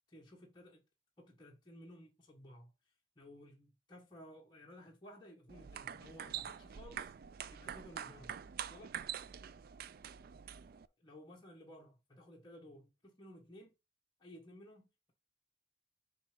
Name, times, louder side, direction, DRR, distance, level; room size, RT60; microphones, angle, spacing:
voice 1, 0.1-0.8 1.2-2.7 3.1-7.1 7.5-8.4 8.7-9.0 11.0-13.7 14.2-15.1, left 1 dB, 20° left, 1.4 m, -56 dB
sound 1, 5.5-10.9, right 9 dB, 50° right, 0.3 m, -45 dB
6.9 x 3.3 x 5.1 m
head